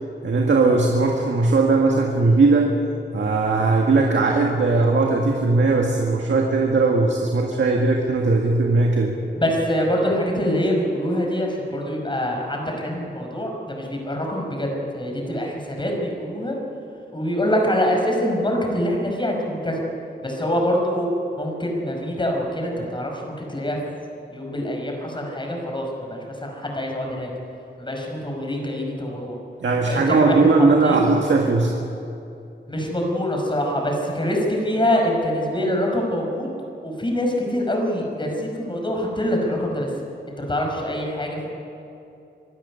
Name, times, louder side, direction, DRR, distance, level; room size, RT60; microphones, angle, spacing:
voice 1, 0.2-2.7 3.1-9.2 29.6-31.8, right 3 dB, 90° right, 0 dB, 1.9 m, -19 dB
voice 2, 9.4-16.6 17.1-19.8 20.2-21.1 21.4-23.8 24.3-27.3 27.8-29.4 29.9-31.0 32.7-36.5 36.8-39.9 40.4-41.5, equal, 25° left, 1 dB, 5.3 m, -25 dB
25.0 x 13.0 x 9.7 m, 2.7 s
wide cardioid pair, 125°, 19 cm